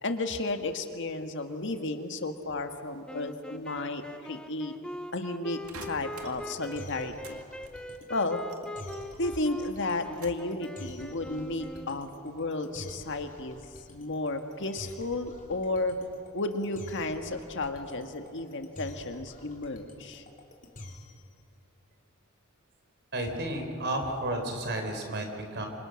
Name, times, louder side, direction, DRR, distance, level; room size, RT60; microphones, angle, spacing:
voice 1, 0.0-4.7 5.1-7.4 8.1-8.4 9.2-13.6 13.9-16.0 16.3-20.3, left 2 dB, 60° left, 6 dB, 1.7 m, -33 dB
sound 1, 3.1-12.2, equal, 5° left, 0.9 m, -42 dB
sound 2, 5.6-21.3, left 1 dB, 40° left, 3.6 m, -47 dB
sound 3, 5.7-7.4 7.6-9.4 9.7-10.5 11.0-11.5, right 4 dB, 90° right, 2.1 m, -48 dB
voice 2, 23.1-25.7, right 1 dB, 55° right, 4 dB, 4.3 m, -32 dB
27.0 x 25.5 x 6.4 m, 2.4 s
head